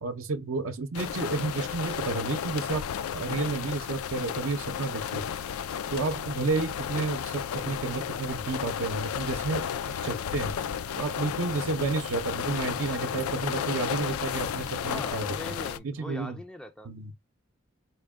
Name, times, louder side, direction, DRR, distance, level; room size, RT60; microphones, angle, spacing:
voice 1, 0.0-2.8 3.1-5.2 5.9-9.7 10.0-10.5 11.0-15.4 15.8-16.4 16.9-17.1, right 3 dB, 65° right, 0.5 m, -31 dB
sound 1, 0.9-15.8, left 8 dB, 80° left, 0.4 m, -33 dB
sound 2, 9.9-15.4, left 3 dB, 65° left, 0.8 m, -51 dB
voice 2, 14.9-16.9, left 1 dB, 5° left, 0.3 m, -41 dB
4.3 x 2.1 x 3.5 m
head